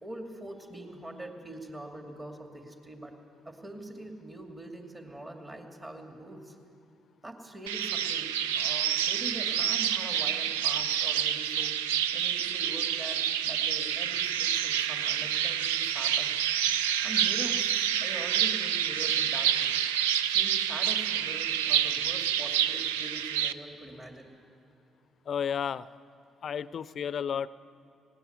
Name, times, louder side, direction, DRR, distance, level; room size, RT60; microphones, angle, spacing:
voice 1, 0.0-3.1 3.4-6.6 7.2-11.8 12.1-16.4 17.0-19.9 20.3-24.3, right 1 dB, 25° right, 3 dB, 2.6 m, -43 dB
sound 1, 7.7-23.5, right 10 dB, 85° right, 0.4 m, -28 dB
voice 2, 25.3-25.9 26.4-27.5, left 8 dB, 55° left, 18 dB, 0.5 m, -32 dB
19.0 x 18.0 x 8.1 m, 2.7 s
hypercardioid pair, 50°, 0 cm